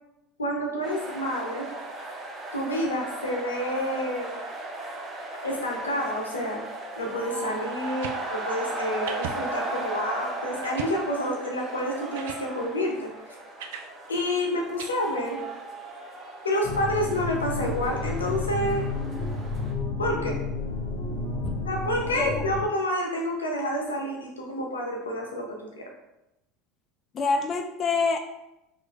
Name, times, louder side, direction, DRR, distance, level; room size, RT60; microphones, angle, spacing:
voice 1, 0.4-1.7 2.5-4.3 5.4-6.6 7.0-13.4 14.1-15.4 16.4-18.8 20.0-20.4 21.7-25.9, equal, 90° left, 0 dB, 0.7 m, -29 dB
sound 1, 0.8-19.7, right 2 dB, 35° right, 0.7 m, -37 dB
sound 2, 7.8-8.2 9.1-9.4 9.9-10.0 10.6-11.0 11.8-11.9 12.1-12.4 13.6-13.9 14.8-14.9, right 7 dB, 70° right, 0.3 m, -37 dB
sound 3, 16.6-22.6, left 3 dB, 50° left, 0.7 m, -31 dB
voice 2, 27.1-28.2, left 4 dB, 35° left, 5 dB, 0.3 m, -26 dB
3.0 x 2.5 x 3.1 m, 0.89 s
hypercardioid pair, 80°, 0 cm